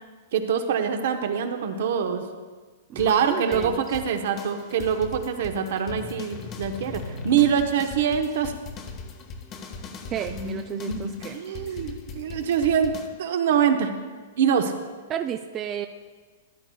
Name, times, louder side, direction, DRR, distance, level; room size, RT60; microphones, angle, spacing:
voice 1, 0.3-2.2 2.9-8.5 10.3-12.9 13.2-13.9 14.4-14.7, right 7 dB, 65° right, 6 dB, 0.9 m, -24 dB
voice 2, 2.9-4.0 10.1-11.3 15.1-15.9, right 9 dB, 30° right, 7 dB, 0.3 m, -32 dB
sound 1, 3.0-13.1, left 4 dB, 30° left, 0.9 m, -39 dB
13.5 x 10.0 x 2.3 m, 1.4 s
hypercardioid pair, 130°, 0 cm